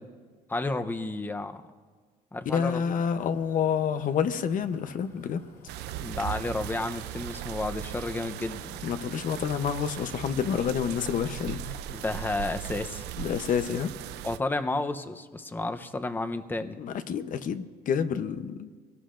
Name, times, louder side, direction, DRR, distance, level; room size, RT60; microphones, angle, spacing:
voice 1, 0.5-1.6 2.3-3.0 6.0-8.6 11.6-13.0 14.2-16.8, left 2 dB, 10° left, 8 dB, 0.7 m, -32 dB
voice 2, 2.5-5.4 8.8-11.6 13.2-13.9 16.8-18.7, left 7 dB, 50° left, 11 dB, 0.8 m, -28 dB
sound 1, 3.1-11.7, left 4 dB, 90° left, 3.6 m, -53 dB
sound 2, 5.7-14.4, right 12 dB, 85° right, 0.5 m, -38 dB
24.0 x 18.0 x 2.6 m, 1.5 s
cardioid pair, 110°, 17 cm